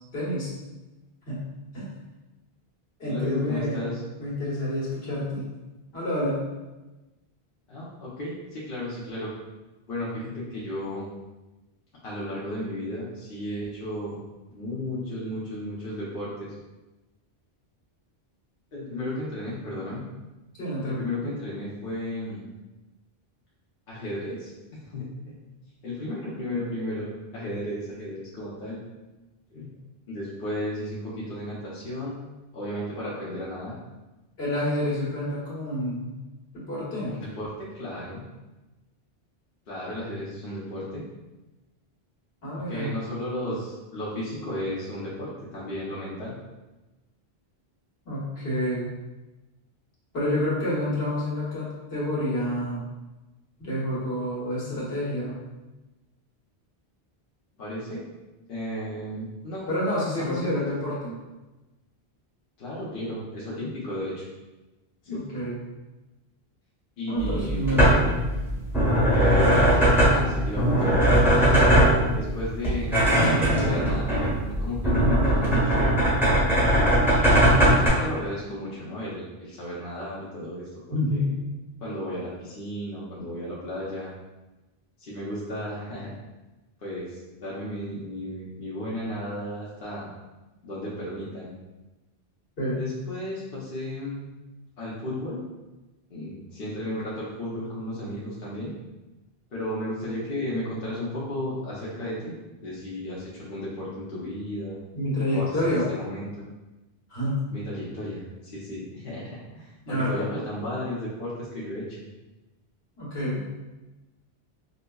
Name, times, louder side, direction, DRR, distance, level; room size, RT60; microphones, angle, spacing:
voice 1, 0.1-0.5 1.3-1.4 1.7-1.9 3.0-3.8 4.2-5.5 5.9-6.4 20.6-21.4 34.4-36.1 36.5-37.2 42.4-42.9 48.0-48.9 50.1-52.8 53.6-55.4 59.7-61.1 65.1-65.6 67.1-67.9 80.9-81.3 92.6-92.8 104.9-105.8 107.1-107.4 109.8-110.1 113.0-113.4, left 1 dB, 80° left, -8 dB, 1.4 m, -28 dB
voice 2, 3.0-4.0 7.7-9.3 9.9-11.1 12.0-14.2 14.5-16.5 18.7-20.0 20.8-22.4 23.9-24.5 24.8-25.3 25.8-28.8 29.5-29.7 30.1-32.2 32.5-33.8 37.0-38.2 39.7-41.0 42.7-46.4 57.6-58.0 58.5-59.7 60.2-60.6 62.6-64.2 65.0-65.2 67.0-68.0 69.1-71.4 72.1-75.9 77.7-80.7 81.1-81.3 81.8-84.1 85.0-86.2 86.8-90.1 90.6-91.5 92.7-94.2 94.8-95.4 96.1-98.7 99.5-104.8 105.3-106.3 107.5-112.0, left 1 dB, 65° left, -8 dB, 0.9 m, -34 dB
sound 1, 67.2-77.9, right 1 dB, ahead, 0.9 m, -20 dB
5.1 x 2.1 x 2.2 m, 1.1 s
omnidirectional pair, 1.0 m